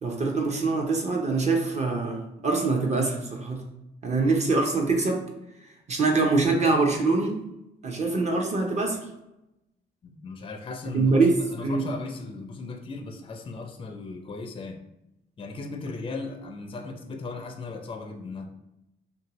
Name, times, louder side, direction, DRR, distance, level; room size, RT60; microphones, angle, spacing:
voice 1, 0.0-3.6 4.0-5.3 5.9-7.4 7.8-9.0 10.9-11.9, right 3 dB, 35° right, 2 dB, 0.7 m, -24 dB
voice 2, 10.0-11.2 11.5-14.8 15.4-18.5, left 3 dB, 25° left, 4 dB, 0.4 m, -37 dB
2.6 x 2.6 x 3.0 m, 0.90 s
cardioid pair, 90°, 20 cm